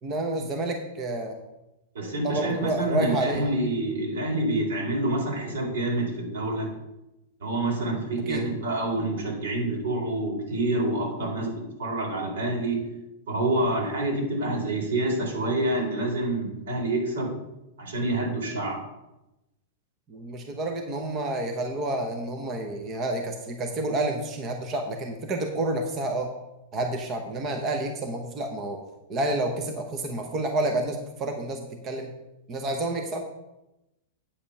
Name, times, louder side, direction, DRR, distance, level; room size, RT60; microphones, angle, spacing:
voice 1, 0.0-1.3 2.2-3.4 8.3-8.5 20.1-26.3 26.7-28.8 29.1-32.1 32.5-33.2, right 2 dB, 20° right, 4 dB, 0.8 m, -29 dB
voice 2, 1.9-6.7 7.4-12.9 13.3-17.3 17.8-18.8, right 2 dB, 80° right, -1 dB, 3.8 m, -27 dB
8.7 x 5.0 x 7.0 m, 0.93 s
supercardioid pair, 170°, 0 cm